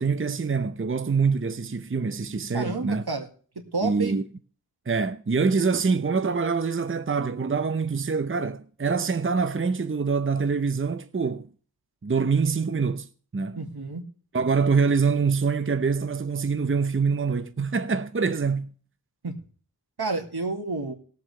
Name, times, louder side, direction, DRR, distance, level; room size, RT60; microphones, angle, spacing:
voice 1, 0.0-3.0 3.8-4.2 4.9-11.5 12.0-13.1 13.3-13.6 14.3-18.7, right 5 dB, 35° right, 0.7 m, -25 dB
voice 2, 2.5-3.3 3.7-4.2 13.6-14.0 19.2-19.3 20.0-20.9, right 3 dB, 90° right, 2.1 m, -30 dB
20.0 x 7.6 x 3.3 m
wide cardioid pair, 55°, 37 cm